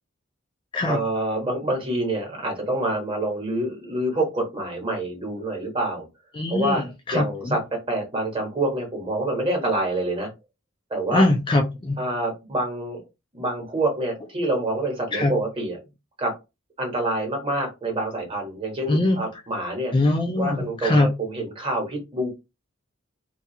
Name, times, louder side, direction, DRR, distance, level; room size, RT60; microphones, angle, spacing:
voice 1, 0.9-6.0 6.5-6.8 7.1-10.3 10.9-11.2 12.0-13.1 13.3-15.8 16.2-16.3 16.8-19.9 20.4-22.3, right 1 dB, 25° right, 1.0 m, -27 dB
voice 2, 6.3-7.6 11.1-12.0 15.1-15.3 18.9-19.2 19.9-21.1, left 2 dB, 25° left, 0.3 m, -22 dB
2.3 x 2.3 x 2.7 m
head